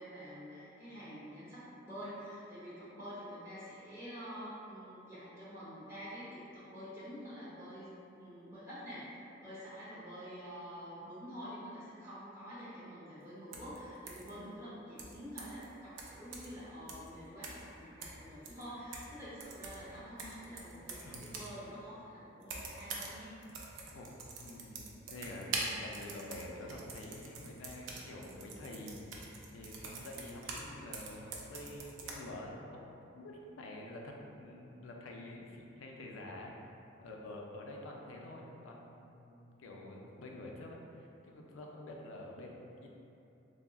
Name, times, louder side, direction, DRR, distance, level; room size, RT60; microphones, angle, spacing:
voice 1, 0.0-23.4, equal, 15° right, -12 dB, 0.9 m, -47 dB
sound 1, 13.5-13.8 14.1-14.3 15.0-15.6 16.0-16.6 16.9-17.1 17.4-17.7 18.0-19.1 19.4-21.6 22.4-23.2 23.4-30.7 30.9-32.1, right 3 dB, 80° right, 0.4 m, -44 dB
voice 2, 20.8-21.4 23.9-24.1 24.4-29.0 29.5-36.5 37.0-42.9, left 1 dB, 90° left, -1 dB, 0.4 m, -48 dB
3.5 x 2.0 x 2.2 m, 2.8 s
head